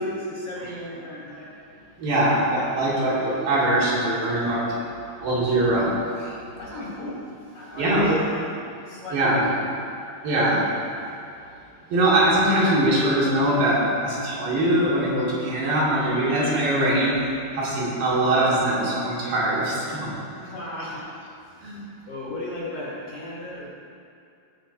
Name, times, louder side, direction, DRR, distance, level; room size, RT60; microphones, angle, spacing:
voice 1, 0.0-1.5 6.6-8.5 8.9-9.7 20.4-21.1 22.1-23.7, left 1 dB, 45° left, -8 dB, 2.5 m, -34 dB
voice 2, 2.0-4.7 5.2-6.0 6.2-6.3 7.8-8.1 9.1-9.4 10.2-10.7 11.9-17.2 17.5-20.4 21.6-21.7, right 1 dB, 65° right, -7 dB, 3.9 m, -22 dB
18.0 x 6.0 x 4.2 m, 2.6 s
omnidirectional pair, 4.5 m